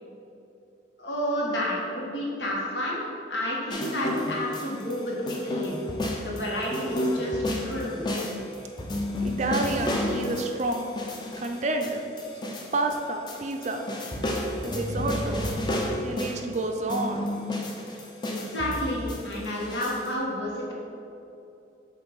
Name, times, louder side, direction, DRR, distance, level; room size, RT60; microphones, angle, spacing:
voice 1, 1.0-3.0 3.3-5.8 6.2-8.1 18.2-20.7, left 1 dB, 75° left, -4 dB, 1.4 m, -30 dB
sound 1, 3.7-5.0 5.3-13.0 13.3-16.5 16.9-20.1, left 1 dB, 25° left, 0.6 m, -31 dB
voice 2, 9.2-10.8 11.4-12.0 12.4-13.8 14.6-15.4 16.0-17.2, right 2 dB, 40° right, 4 dB, 0.4 m, -29 dB
7.4 x 2.6 x 5.4 m, 2.7 s
head